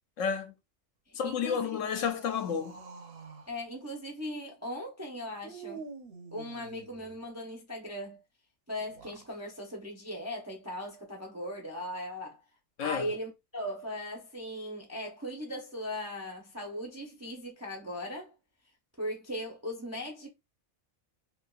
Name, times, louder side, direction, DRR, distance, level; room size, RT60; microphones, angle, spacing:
voice 1, 0.2-0.5 1.1-2.8 12.8-13.1, left 7 dB, 70° left, 0.9 m, -31 dB
voice 2, 1.1-1.7 3.5-5.8 6.3-8.2 8.7-12.4 12.8-18.3 19.0-20.3, equal, 20° right, 0.4 m, -38 dB
sound 1, 1.2-3.5 5.4-7.2 8.8-9.3, right 5 dB, 55° right, 0.7 m, -47 dB
3.4 x 2.8 x 2.3 m
omnidirectional pair, 1.4 m